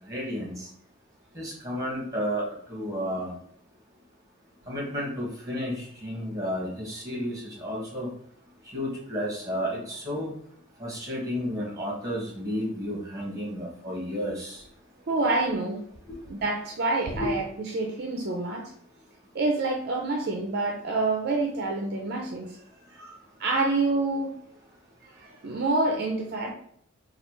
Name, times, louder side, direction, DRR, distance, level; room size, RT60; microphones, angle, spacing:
voice 1, 0.0-0.7 1.3-3.3 4.7-8.1 8.7-10.3 10.8-14.6 17.1-17.3, equal, 15° right, -3 dB, 1.4 m, -32 dB
voice 2, 15.1-15.8 16.3-18.7 19.3-22.6 22.9-23.1 23.4-24.4 25.0-26.5, right 2 dB, 50° right, 1 dB, 0.5 m, -27 dB
3.2 x 2.4 x 4.3 m, 0.67 s
head